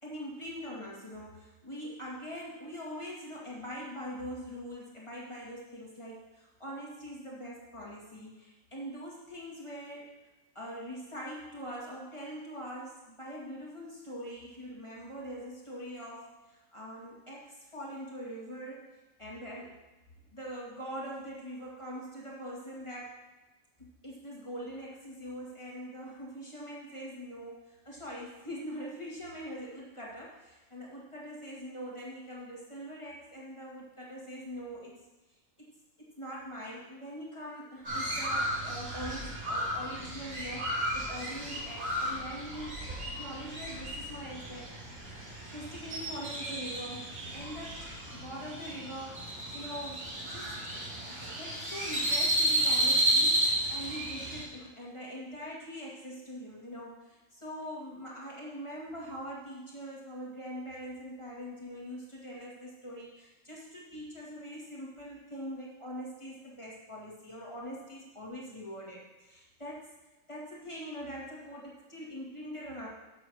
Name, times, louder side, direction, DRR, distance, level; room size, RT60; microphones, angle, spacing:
voice 1, 0.0-10.1 10.5-18.9 19.2-19.8 20.3-23.2 23.8-34.9 35.6-35.7 36.2-42.8 43.0-45.0 45.5-50.6 51.1-69.9 70.3-72.9, equal, 20° left, -5 dB, 2.2 m, -43 dB
Crow, 37.8-54.4, right 1 dB, 65° right, 2.7 m, -33 dB
7.6 x 7.1 x 6.3 m, 1.1 s
omnidirectional pair, 1.5 m